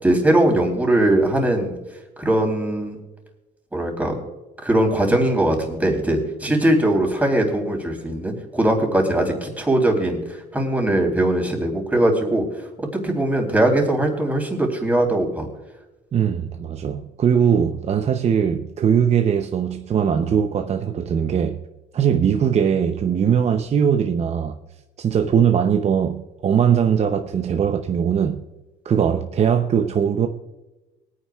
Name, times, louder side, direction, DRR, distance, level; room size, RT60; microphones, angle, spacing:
voice 1, 0.0-1.8 2.2-3.0 3.7-4.2 4.6-10.2 10.5-12.4 13.0-15.5, right 1 dB, 10° right, 3.4 m, -20 dB
voice 2, 16.1-21.6 21.9-24.6 25.0-28.4 28.8-30.3, right 8 dB, 40° right, 0.7 m, -20 dB
23.0 x 9.5 x 2.4 m
cardioid pair, 110°, 17 cm